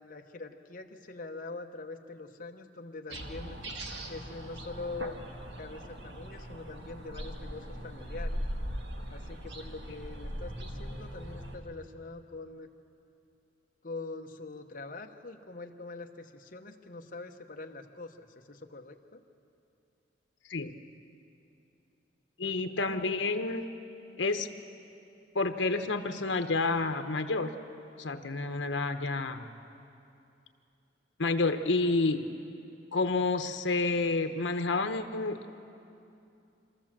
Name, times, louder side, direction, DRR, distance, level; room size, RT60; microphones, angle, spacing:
voice 1, 0.0-3.5 4.1-5.2 5.6-8.4 9.1-12.7 13.8-19.2 22.8-23.0, left 3 dB, 50° left, 4 dB, 1.0 m, -43 dB
sound 1, 3.1-11.6, equal, 65° right, 1.7 m, -40 dB
voice 2, 22.4-23.7 24.2-24.5 25.3-27.5 28.0-29.5 31.2-32.2 32.9-35.6, left 3 dB, 85° left, 7 dB, 1.0 m, -29 dB
26.0 x 14.0 x 7.4 m, 2.7 s
head